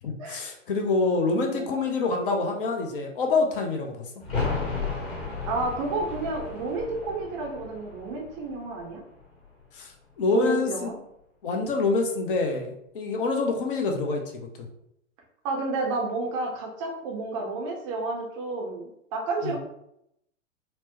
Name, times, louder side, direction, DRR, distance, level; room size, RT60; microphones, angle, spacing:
voice 1, 0.0-4.0 9.7-9.9 10.2-10.9 11.4-14.2 14.6-14.7 19.4-19.6, left 3 dB, 45° left, 3 dB, 0.7 m, -26 dB
sound 1, 4.2-9.8 10.1-10.2, left 4 dB, 30° left, 1.2 m, -34 dB
voice 2, 5.4-9.0 10.3-10.9 15.4-19.6, right 3 dB, 25° right, 0 dB, 0.5 m, -30 dB
4.4 x 2.0 x 2.9 m, 0.77 s
figure-of-eight pair, 105°, 37 cm